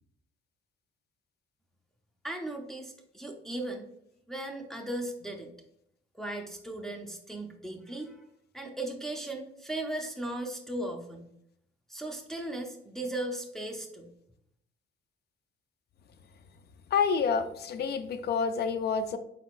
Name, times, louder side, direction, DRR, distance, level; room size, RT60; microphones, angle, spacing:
voice 1, 2.2-3.9 4.3-5.5 6.1-8.2 8.5-11.3 11.9-14.1, right 1 dB, ahead, 1 dB, 0.6 m, -37 dB
voice 2, 16.9-19.2, left 6 dB, 55° left, 10 dB, 0.5 m, -28 dB
4.1 x 4.0 x 2.4 m, 0.75 s
cardioid pair, 90°, 20 cm